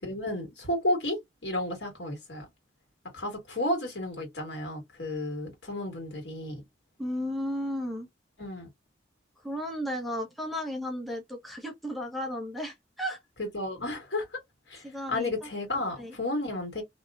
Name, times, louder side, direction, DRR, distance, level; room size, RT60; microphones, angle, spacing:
voice 1, 0.0-2.5 3.1-6.6 8.4-8.7 13.4-14.4 14.7-16.8, left 1 dB, 75° left, 1.9 m, -32 dB
voice 2, 7.0-8.1 9.4-13.2 14.8-15.5 16.0-16.2, equal, ahead, 0.7 m, -34 dB
3.0 x 2.8 x 2.3 m
head